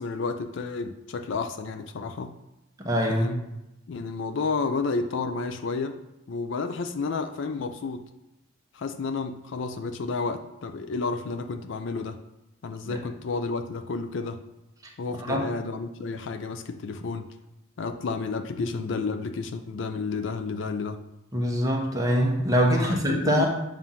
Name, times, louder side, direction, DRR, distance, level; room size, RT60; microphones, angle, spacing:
voice 1, 0.0-2.3 3.1-3.4 3.9-6.0 6.3-8.1 8.7-12.2 12.6-14.4 15.0-17.3 17.8-21.0 22.7-23.4, left 4 dB, 60° left, 7 dB, 0.4 m, -31 dB
voice 2, 2.8-3.3 12.9-13.0 15.3-15.5 21.3-23.5, equal, 15° right, -1 dB, 0.9 m, -24 dB
7.3 x 2.5 x 5.6 m, 0.93 s
head